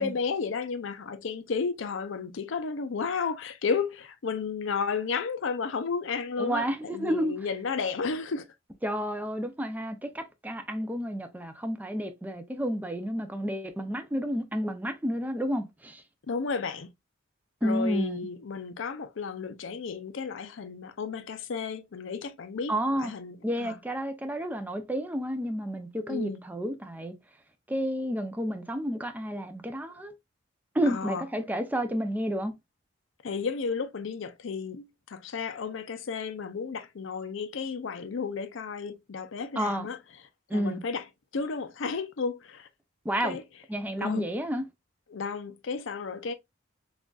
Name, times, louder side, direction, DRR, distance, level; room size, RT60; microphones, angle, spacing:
voice 1, 0.0-8.5 16.3-16.9 17.6-23.7 26.1-26.4 30.9-31.2 33.2-40.0 40.5-41.0 41.3-42.7 43.2-43.4 44.0-44.3 45.1-46.3, left 5 dB, 65° left, 0.5 m, -33 dB
voice 2, 6.4-7.3 8.8-16.0 17.6-18.3 22.7-23.1 23.4-27.1 27.7-30.1 30.7-32.5 39.6-39.9 40.5-40.8 43.0-43.4 43.7-44.6, equal, 10° right, 0.4 m, -30 dB
6.1 x 2.5 x 2.3 m
head